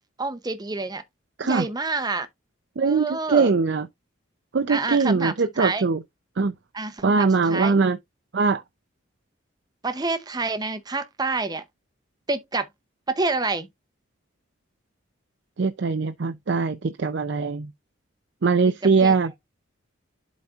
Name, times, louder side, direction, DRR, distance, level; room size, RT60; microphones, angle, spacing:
voice 1, 0.2-1.0 1.4-2.3 2.8-3.5 4.7-5.8 6.7-7.7 9.8-11.6 12.3-12.7 13.1-13.7 19.0-19.2, right 3 dB, 20° right, 0.7 m, -28 dB
voice 2, 2.8-3.9 4.5-6.0 6.4-6.5 7.0-8.0 8.3-8.6 15.6-17.7 18.4-19.3, right 4 dB, 60° right, 0.5 m, -21 dB
11.5 x 4.1 x 2.4 m
head